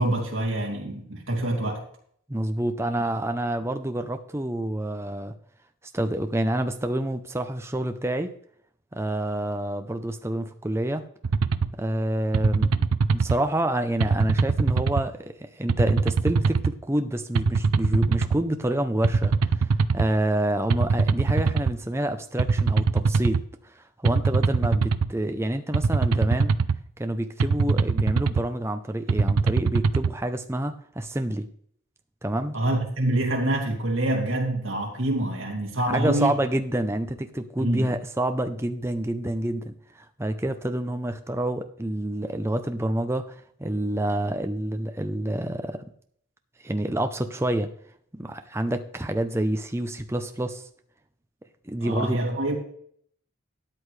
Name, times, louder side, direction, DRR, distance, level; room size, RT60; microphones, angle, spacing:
voice 1, 0.0-1.8 32.5-36.4 37.6-37.9 51.8-52.5, right 1 dB, 60° right, 2.7 m, -26 dB
voice 2, 2.3-5.3 5.9-8.3 8.9-11.0 11.8-12.8 13.1-19.7 19.9-23.4 23.8-26.5 27.0-31.5 32.2-32.5 35.9-39.7 40.2-43.3 43.6-45.8 46.6-47.7 48.2-50.6 51.6-52.2, right 1 dB, 10° right, 0.6 m, -28 dB
sound 1, 11.2-11.7 12.3-13.4 14.0-15.0 15.7-16.7 17.4-18.4 19.0-20.1 20.7-21.7 22.4-23.4 24.1-25.1 25.7-26.8 27.4-28.4 29.1-30.1, right 4 dB, 85° right, 0.5 m, -22 dB
13.0 x 9.5 x 3.3 m
head